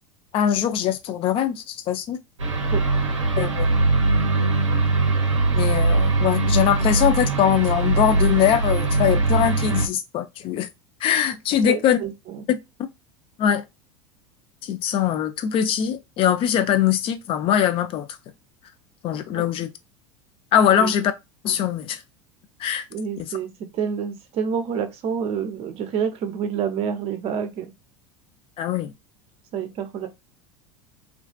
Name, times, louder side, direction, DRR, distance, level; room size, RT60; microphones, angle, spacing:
voice 1, 0.3-2.2 3.4-3.8 5.5-10.7 11.0-12.0 12.5-12.6 13.4-13.7 14.6-18.2 19.0-19.7 20.5-21.1 21.4-22.0 22.6-22.9 23.2-23.3 28.6-28.9, left 10 dB, 35° left, 0.4 m, -22 dB
sound 1, 2.4-9.9, right 3 dB, 85° right, 0.6 m, -21 dB
voice 2, 11.6-12.4 19.3-19.5 20.7-21.0 22.9-27.7 29.5-30.1, right 7 dB, 40° right, 0.6 m, -28 dB
2.5 x 2.4 x 2.2 m
figure-of-eight pair, 75°, 16 cm